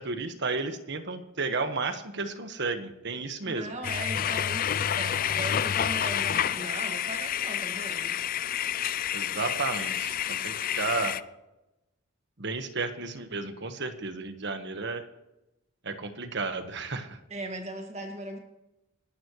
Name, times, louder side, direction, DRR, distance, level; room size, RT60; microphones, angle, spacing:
voice 1, 0.0-3.7 9.1-11.2 12.4-15.0 15.8-17.2, right 3 dB, 60° right, 7 dB, 1.4 m, -33 dB
voice 2, 3.4-8.2 17.3-18.4, right 2 dB, 30° right, 3 dB, 2.1 m, -38 dB
sound 1, 3.8-11.2, left 9 dB, 45° left, 0.4 m, -29 dB
28.5 x 11.5 x 3.2 m, 0.97 s
head